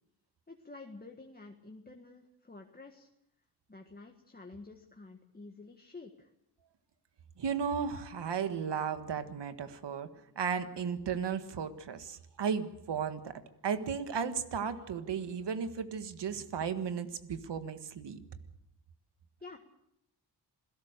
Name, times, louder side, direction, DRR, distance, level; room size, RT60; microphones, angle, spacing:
voice 1, 0.5-3.1 3.7-6.3 19.4-19.6, left 3 dB, 20° left, 2 dB, 1.9 m, -50 dB
voice 2, 7.4-10.1 10.4-18.2, right 6 dB, 80° right, 9 dB, 1.8 m, -35 dB
27.0 x 17.0 x 6.7 m, 0.81 s
cardioid pair, 80°, 41 cm